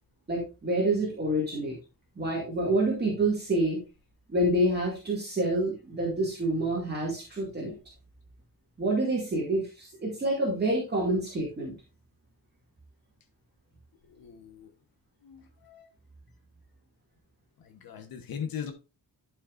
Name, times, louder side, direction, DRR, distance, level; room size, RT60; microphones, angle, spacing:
voice 1, 0.3-1.8 2.2-3.8 4.3-7.7 8.8-11.7, right 1 dB, 30° right, -4 dB, 2.2 m, -27 dB
voice 2, 14.0-14.7 15.2-15.9 17.6-18.7, left 7 dB, 90° left, 6 dB, 1.2 m, -39 dB
11.5 x 5.7 x 2.5 m, 0.30 s
wide cardioid pair, 175°, 34 cm